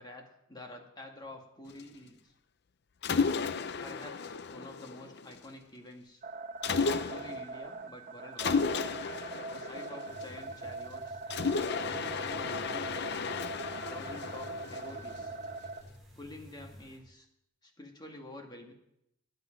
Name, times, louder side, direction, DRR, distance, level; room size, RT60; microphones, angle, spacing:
voice 1, 0.0-2.3 3.8-6.2 6.8-8.6 9.5-11.2 11.8-13.4 13.9-15.4 16.2-17.3 17.6-18.7, left 1 dB, 20° left, 2 dB, 2.0 m, -48 dB
Mechanisms, 3.0-5.5 6.6-7.5 8.4-10.7 11.3-15.5, left 5 dB, 55° left, 0.6 m, -34 dB
sound 1, 6.2-15.8, right 3 dB, 40° right, 1.0 m, -42 dB
sound 2, 10.1-17.0, equal, ahead, 4.9 m, -53 dB
21.5 x 8.2 x 5.3 m, 0.80 s
head